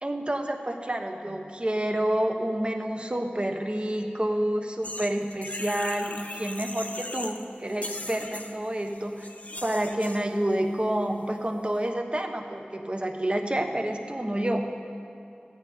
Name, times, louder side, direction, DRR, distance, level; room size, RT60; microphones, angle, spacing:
voice 1, 0.0-9.3 9.6-14.7, right 1 dB, 30° right, 4 dB, 1.1 m, -29 dB
sound 1, 4.8-7.4 7.7-10.3, left 1 dB, 45° left, 0.8 m, -38 dB
14.0 x 9.0 x 5.0 m, 2.6 s
wide cardioid pair, 40°, 3 cm